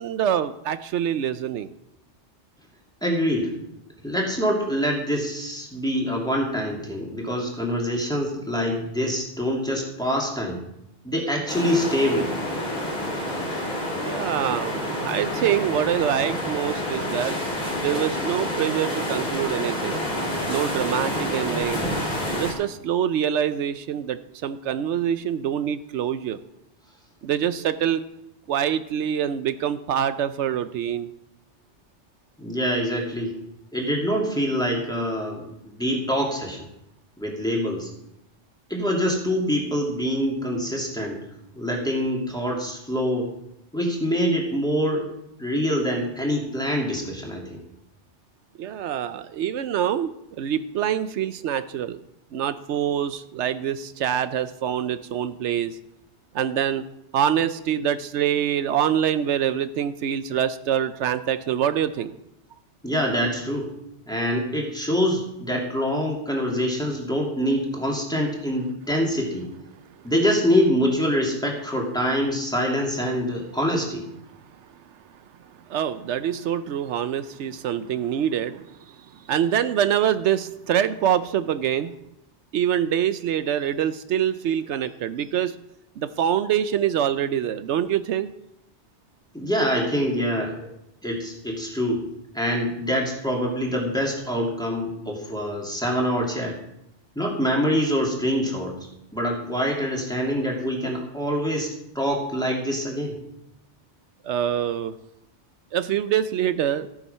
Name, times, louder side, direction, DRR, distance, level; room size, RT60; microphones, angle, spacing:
voice 1, 0.0-1.7 14.0-17.3 17.8-20.0 20.5-21.8 22.3-26.4 27.2-28.0 28.5-31.1 48.6-50.1 50.4-52.0 52.3-55.8 56.3-56.8 57.1-62.1 75.7-78.9 79.3-81.9 82.5-85.6 86.0-88.3 104.2-104.9 105.7-106.9, right 9 dB, 80° right, 12 dB, 0.9 m, -25 dB
voice 2, 3.0-3.5 4.0-10.6 11.0-12.5 32.4-33.4 33.7-36.7 37.2-37.9 38.7-41.2 41.5-43.3 43.7-45.1 45.4-47.6 62.8-63.7 64.1-69.5 70.0-74.0 89.3-90.7 91.0-92.1 92.3-96.6 97.2-98.8 99.1-103.2, equal, 5° left, -2 dB, 2.6 m, -25 dB
sound 1, 11.5-22.5, left 1 dB, 40° left, 3.2 m, -28 dB
14.0 x 8.8 x 5.6 m, 0.83 s
omnidirectional pair, 1.2 m